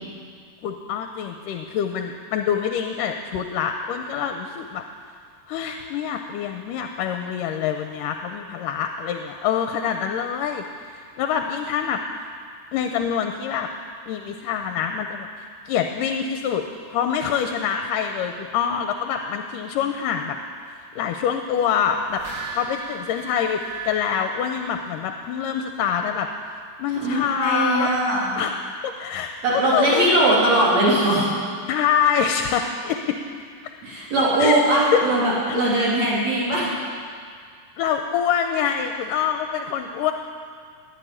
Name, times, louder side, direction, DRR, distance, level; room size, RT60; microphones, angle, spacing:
voice 1, 0.6-4.8 5.5-10.6 10.9-12.0 12.7-13.7 14.1-16.7 16.9-20.4 21.0-26.3 26.8-27.9 28.4-30.1 31.7-33.2 34.4-34.6 34.9-35.0 35.5-35.6 37.8-40.1, left 8 dB, 80° left, 5 dB, 2.2 m, -25 dB
sound 1, 21.9-25.4 25.8-25.9, right 4 dB, 80° right, 6.0 m, -37 dB
voice 2, 27.0-28.4 29.4-31.3 33.8-36.7, right 1 dB, 55° right, -6 dB, 4.1 m, -20 dB
15.0 x 9.5 x 10.0 m, 2.1 s
omnidirectional pair, 3.9 m